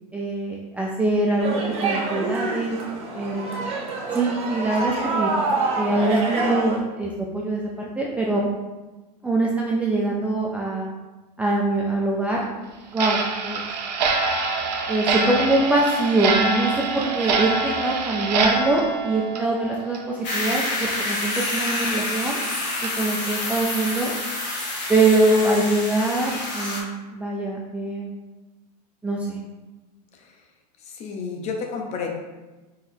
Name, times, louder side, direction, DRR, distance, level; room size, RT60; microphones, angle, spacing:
voice 1, 0.1-2.8 3.1-3.6 4.1-5.3 5.8-8.5 9.2-10.9 11.4-12.4 12.9-13.6 14.9-22.4 22.8-24.1 24.9-28.1 29.0-29.4, right 2 dB, 5° right, -3 dB, 0.3 m, -23 dB
sound 1, 1.4-6.8, right 3 dB, 30° right, 0.9 m, -26 dB
Clock, 12.9-20.2 20.5-20.6 21.1-21.2 21.7-21.8 22.3-22.4 22.8-22.9 23.4-23.6, right 4 dB, 85° right, 0.7 m, -25 dB
sound 2, 20.2-26.8, left 2 dB, 85° left, 1.1 m, -28 dB
voice 2, 30.8-32.1, left 5 dB, 30° left, 2 dB, 0.7 m, -31 dB
4.5 x 3.8 x 2.6 m, 1.2 s
supercardioid pair, 130°, 21 cm